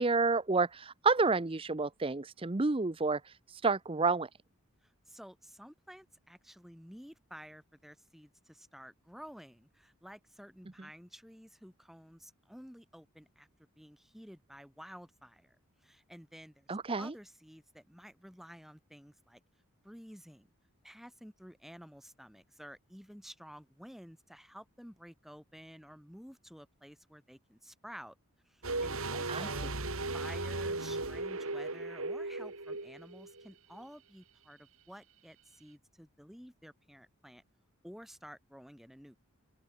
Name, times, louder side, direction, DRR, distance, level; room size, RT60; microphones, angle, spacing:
voice 1, 0.0-4.3 16.7-17.1 29.3-29.6, right 3 dB, 25° right, 0.6 m, -30 dB
voice 2, 5.1-13.5 13.8-15.6 15.8-16.7 17.0-19.4 19.8-20.5 20.8-28.2 28.5-29.8 30.1-37.4 37.8-39.2, equal, ahead, 5.3 m, -52 dB
sound 1, 28.6-33.5 33.7-33.8, right 2 dB, 70° right, 3.3 m, -37 dB
open air
head